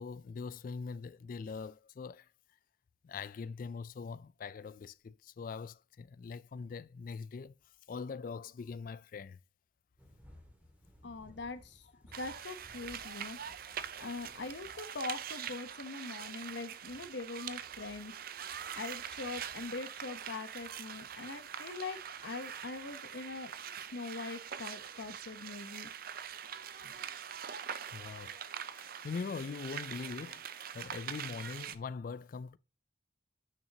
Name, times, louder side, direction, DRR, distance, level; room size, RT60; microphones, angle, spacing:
voice 1, 0.0-2.3 3.0-7.5 7.9-9.4 26.8-27.0 27.9-28.4 28.8-30.5 30.7-32.6, left 5 dB, 45° left, 0.3 m, -42 dB
sound 1, 10.0-26.9, equal, 10° right, 2.0 m, -64 dB
voice 2, 11.0-11.9 12.2-18.1 18.8-23.5 23.8-25.9, left 3 dB, 70° left, 0.8 m, -42 dB
sound 2, 12.1-31.7, right 8 dB, 50° right, 0.5 m, -44 dB
9.3 x 5.8 x 2.8 m
head